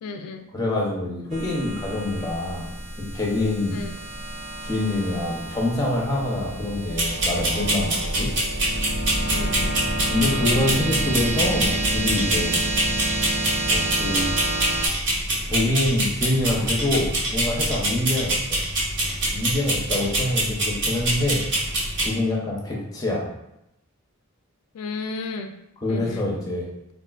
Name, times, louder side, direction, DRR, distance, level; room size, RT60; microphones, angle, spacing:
voice 1, 0.0-0.5 3.7-4.0 9.3-9.8 24.7-25.5 25.9-26.3, left 4 dB, 90° left, 6 dB, 0.3 m, -33 dB
voice 2, 0.5-2.7 3.1-3.8 4.6-8.3 10.1-12.6 13.7-14.3 15.5-18.6 19.3-21.4 22.0-23.3 25.8-26.7, left 1 dB, 15° left, -2 dB, 0.6 m, -25 dB
sound 1, 1.3-14.9, right 1 dB, 30° right, 0.4 m, -29 dB
sound 2, 7.0-22.1, right 1 dB, 50° right, 0.8 m, -25 dB
3.5 x 2.4 x 2.3 m, 0.84 s
head